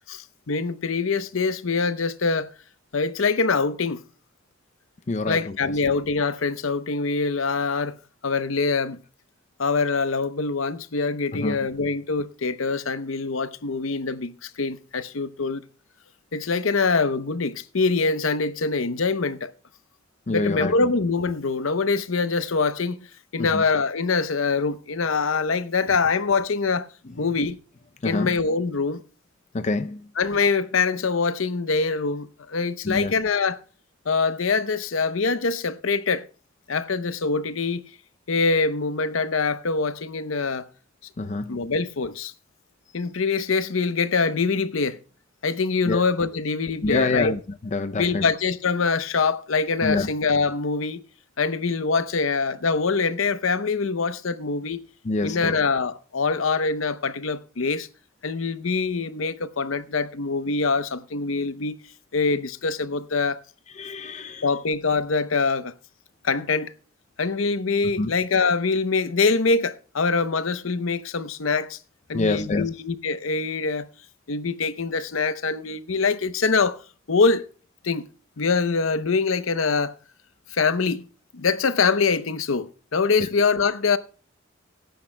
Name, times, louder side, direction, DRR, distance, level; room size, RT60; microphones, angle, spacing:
voice 1, 0.1-2.5 2.9-4.0 5.3-7.9 8.2-9.0 9.6-15.6 16.3-19.5 20.3-23.1 23.3-26.9 27.2-27.6 28.0-29.0 30.2-33.6 34.1-36.3 36.7-37.8 38.3-40.6 41.5-42.3 42.9-45.0 45.4-47.3 48.0-51.0 51.4-54.8 55.2-57.9 58.2-61.7 62.1-63.4 64.4-65.7 66.2-66.7 67.2-71.8 72.1-73.9 74.3-76.8 77.1-77.5 77.8-78.1 78.4-79.9 80.5-81.1 81.3-84.0, left 4 dB, 75° left, 0.8 m, -24 dB
voice 2, 5.1-5.6 11.3-11.6 20.3-20.7 23.4-23.6 28.0-28.3 29.5-30.0 32.8-33.1 41.2-41.6 45.9-46.0 46.8-47.4 47.7-48.3 49.8-50.1 55.0-55.6 63.8-64.4 68.0-68.1 72.1-72.7, left 3 dB, 35° left, 0.5 m, -26 dB
20.0 x 10.0 x 2.2 m
head